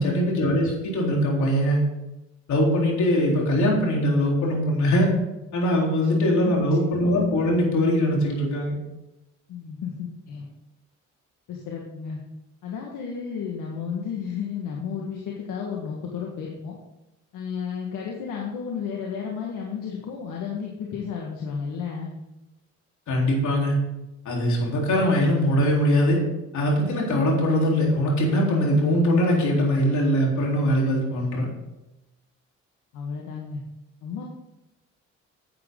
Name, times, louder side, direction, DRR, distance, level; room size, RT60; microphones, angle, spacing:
voice 1, 0.0-1.8 2.5-5.1 5.5-8.7 23.1-23.7 24.3-26.2 26.5-31.5, equal, 70° left, -2 dB, 3.9 m, -22 dB
voice 2, 9.5-10.5 11.5-12.2 12.6-16.8 17.3-22.1 32.9-33.6 34.0-34.2, left 6 dB, 85° left, -1 dB, 1.7 m, -32 dB
10.5 x 8.4 x 3.9 m, 0.96 s
cardioid pair, 90°, 30 cm